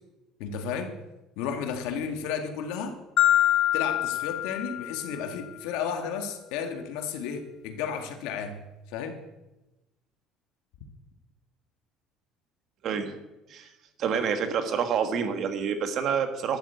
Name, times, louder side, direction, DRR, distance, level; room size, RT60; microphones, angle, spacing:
voice 1, 0.4-1.0 1.4-3.0 3.7-8.6 8.9-9.2, left 7 dB, 90° left, 6 dB, 1.8 m, -33 dB
Marimba xylophone, 3.2-5.4, left 12 dB, 50° left, 0.9 m, -25 dB
voice 2, 12.8-13.1 13.5-13.7 14.0-16.6, right 7 dB, 50° right, 7 dB, 1.7 m, -28 dB
12.0 x 8.1 x 8.3 m, 1.0 s
cardioid pair, 145°, 0 cm